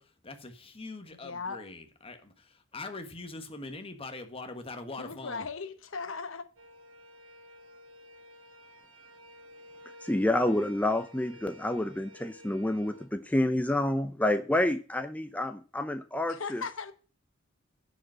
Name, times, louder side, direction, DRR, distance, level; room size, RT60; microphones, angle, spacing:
voice 1, 0.0-5.5, left 3 dB, 30° left, 1.5 m, -42 dB
voice 2, 1.2-1.6 5.0-6.5 16.3-16.9, left 4 dB, 85° left, 1.0 m, -37 dB
sound 1, 6.6-13.1, left 1 dB, 75° right, 2.0 m, -52 dB
voice 3, 10.0-16.6, left 1 dB, 10° left, 0.6 m, -28 dB
10.0 x 5.3 x 7.5 m
head